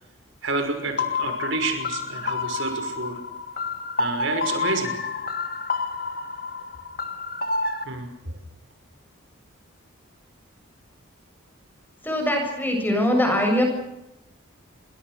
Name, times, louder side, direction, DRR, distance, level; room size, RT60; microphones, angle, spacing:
voice 1, 0.4-3.2 4.0-4.9 7.9-8.4, right 3 dB, 65° right, 6 dB, 6.0 m, -29 dB
sound 1, 1.0-7.8, left 4 dB, 45° left, 2.2 m, -29 dB
voice 2, 12.0-13.6, left 1 dB, 10° left, 3 dB, 7.2 m, -22 dB
29.5 x 23.0 x 6.6 m, 0.88 s
head